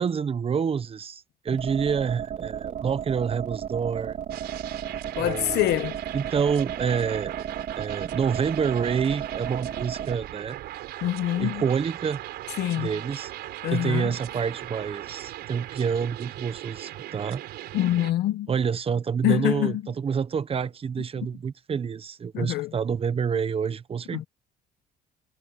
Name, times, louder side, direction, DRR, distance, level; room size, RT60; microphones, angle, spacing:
voice 1, 0.0-4.2 5.1-5.6 6.1-7.5 7.8-10.6 11.3-12.2 12.8-13.3 13.7-17.4 18.5-24.2, right 6 dB, 35° right, 1.0 m, -28 dB
sound 1, 1.5-10.1, right 9 dB, 55° right, 3.8 m, -34 dB
sound 2, 4.3-18.1, right 14 dB, 75° right, 4.7 m, -39 dB
voice 2, 5.2-6.0 11.0-11.6 12.6-12.9 13.6-14.1 17.7-18.5 19.2-19.8 22.3-22.7 24.1-24.3, left 14 dB, 75° left, 1.4 m, -25 dB
cardioid pair, 110°, 17 cm